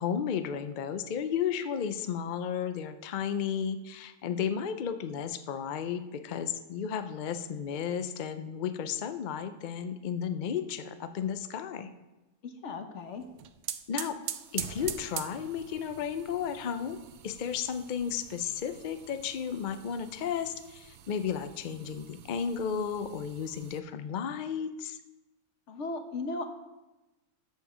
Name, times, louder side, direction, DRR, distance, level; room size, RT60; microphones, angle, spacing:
voice 1, 0.0-11.9 13.9-14.2 14.5-17.0 17.2-25.0, left 7 dB, 80° left, 10 dB, 0.4 m, -33 dB
voice 2, 12.4-13.2 25.7-26.5, left 3 dB, 55° left, 6 dB, 1.2 m, -36 dB
sound 1, 13.2-23.8, right 10 dB, 65° right, 0.7 m, -44 dB
13.0 x 5.4 x 5.0 m, 1.0 s
omnidirectional pair, 1.5 m